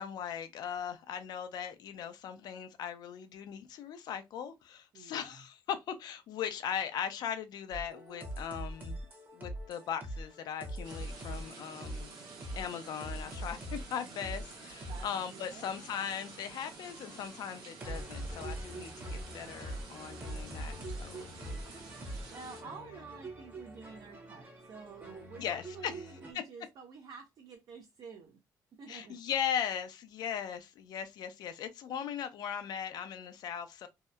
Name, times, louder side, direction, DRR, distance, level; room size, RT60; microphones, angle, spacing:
voice 1, 0.0-9.0 9.3-12.1 12.5-21.3 25.4-26.0 28.9-33.9, left 8 dB, 75° left, 0.4 m, -39 dB
voice 2, 4.9-5.4 14.8-15.8 22.3-28.4 28.7-29.2, right 5 dB, 60° right, 0.5 m, -50 dB
sound 1, 7.7-26.3, right 1 dB, 25° right, 0.8 m, -44 dB
sound 2, 10.8-22.6, right 4 dB, 90° right, 0.8 m, -51 dB
2.7 x 2.1 x 2.2 m
cardioid pair, 100°, 7 cm